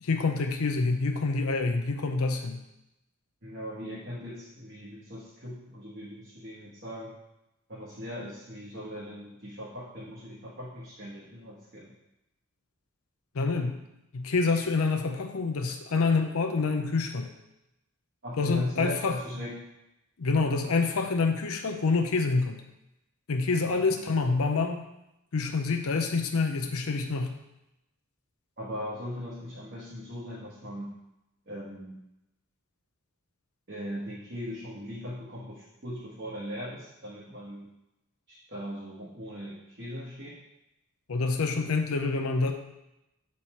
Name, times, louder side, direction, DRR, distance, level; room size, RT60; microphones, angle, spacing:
voice 1, 0.0-2.6 13.3-13.8 14.1-17.3 18.4-19.1 20.2-22.6 23.3-24.8 25.3-27.3 41.1-42.5, left 4 dB, 75° left, 5 dB, 0.6 m, -27 dB
voice 2, 3.4-7.2 7.7-11.9 18.2-19.6 23.6-24.0 28.6-30.9 31.4-32.0 33.7-37.7 38.3-40.4, equal, 50° right, -8 dB, 1.5 m, -39 dB
6.3 x 4.2 x 4.4 m, 0.89 s
head